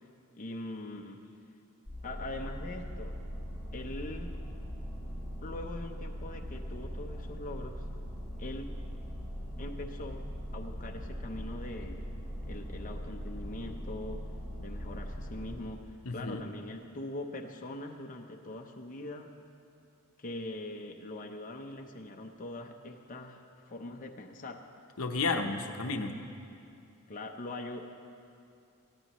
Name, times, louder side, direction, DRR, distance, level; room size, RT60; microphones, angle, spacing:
voice 1, 0.3-1.2 2.0-3.1 3.7-4.3 5.4-7.8 8.4-8.7 9.6-10.2 10.5-12.1 12.4-14.2 14.6-19.3 20.2-23.4 23.7-24.6 27.1-27.8, left 2 dB, 35° left, 1 dB, 0.7 m, -42 dB
sound 1, 1.9-15.6, equal, 10° right, 3.3 m, -40 dB
voice 2, 16.0-16.4 25.0-26.2, left 3 dB, 65° left, 5 dB, 0.8 m, -32 dB
19.0 x 15.5 x 3.0 m, 2.6 s
head